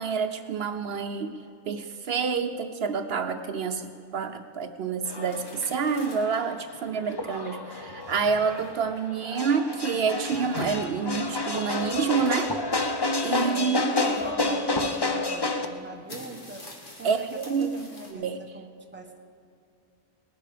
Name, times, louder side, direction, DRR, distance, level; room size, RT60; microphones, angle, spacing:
voice 1, 0.0-1.3 1.7-12.5 13.2-13.9 17.0-17.7 18.1-18.4, right 6 dB, 70° right, 8 dB, 0.9 m, -28 dB
voice 2, 0.7-1.0 13.3-16.7 17.0-19.2, right 2 dB, 10° right, 2 dB, 1.1 m, -41 dB
sound 1, 5.1-15.7, left 2 dB, 25° left, 0.7 m, -30 dB
sound 2, 5.3-6.5 7.1-7.2 7.7-8.8 10.0-11.0 12.3-12.9 13.9-14.4 15.5-15.6 15.9-18.1, left 1 dB, 55° left, 2.2 m, -44 dB
19.0 x 11.0 x 5.0 m, 2.5 s
omnidirectional pair, 1.1 m